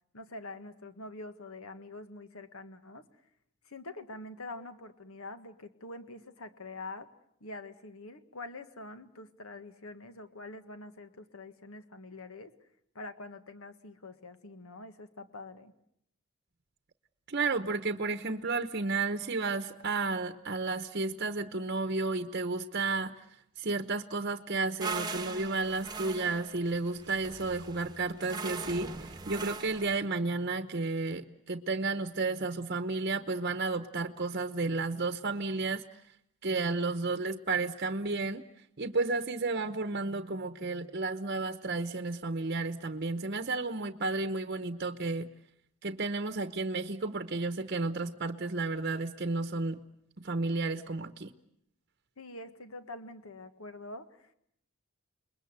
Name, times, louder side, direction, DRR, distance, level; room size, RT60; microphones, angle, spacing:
voice 1, 0.1-3.0 3.6-7.1 7.4-12.5 12.9-15.7 52.2-54.3, left 2 dB, 75° left, 10 dB, 1.7 m, -45 dB
voice 2, 17.3-23.1 23.6-28.9 29.3-35.8 36.4-38.4 38.8-45.3 45.8-49.8 50.2-51.3, right 3 dB, 45° right, 8 dB, 0.9 m, -32 dB
sound 1, 24.8-30.0, right 4 dB, 20° right, 1.1 m, -40 dB
29.0 x 21.5 x 8.1 m, 0.74 s
head